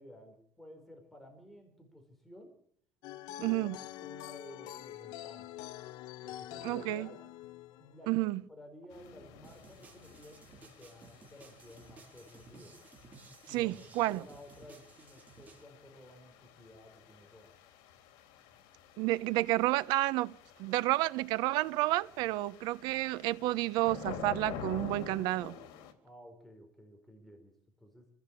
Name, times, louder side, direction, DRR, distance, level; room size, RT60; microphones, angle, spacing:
voice 1, 0.0-2.5 3.4-5.5 6.2-7.2 7.8-12.8 13.5-13.8 14.1-17.5 26.0-28.1, left 1 dB, 5° left, 4.3 m, -54 dB
sound 1, 3.0-8.1, left 14 dB, 65° left, 1.0 m, -45 dB
voice 2, 3.4-3.8 6.6-7.1 8.1-8.4 13.5-14.2 19.0-20.3 20.6-25.6, right 18 dB, 75° right, 1.0 m, -30 dB
sound 2, 8.9-25.9, left 7 dB, 90° left, 3.5 m, -49 dB
sound 3, 9.4-15.6, right 4 dB, 20° right, 4.3 m, -56 dB
26.0 x 17.5 x 8.5 m
cardioid pair, 165°, 7 cm